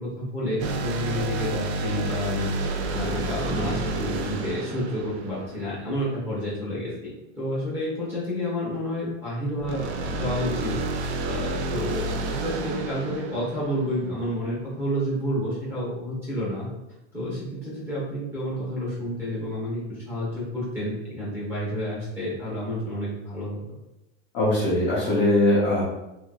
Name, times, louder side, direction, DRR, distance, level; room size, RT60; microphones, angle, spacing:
voice 1, 0.0-16.7 17.1-23.6, equal, 5° right, -8 dB, 0.9 m, -30 dB
sound 1, 0.6-6.1 9.6-14.3, right 2 dB, 65° right, 0.5 m, -30 dB
voice 2, 24.3-25.8, left 1 dB, 20° left, -8 dB, 0.3 m, -21 dB
3.3 x 2.8 x 2.3 m, 0.93 s
supercardioid pair, 170°, 35 cm